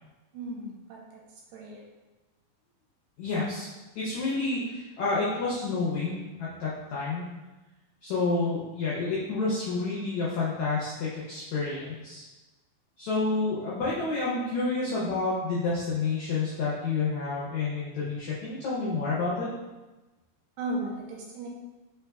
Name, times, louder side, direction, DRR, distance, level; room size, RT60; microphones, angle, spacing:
voice 1, 0.3-1.0 1.5-1.8 20.6-21.5, right 1 dB, 80° right, -3 dB, 2.3 m, -35 dB
voice 2, 3.2-3.7 3.9-7.3 8.0-12.2 13.0-19.5, left 3 dB, 80° left, -7 dB, 1.6 m, -29 dB
5.4 x 3.3 x 2.3 m, 1.1 s
omnidirectional pair, 4.3 m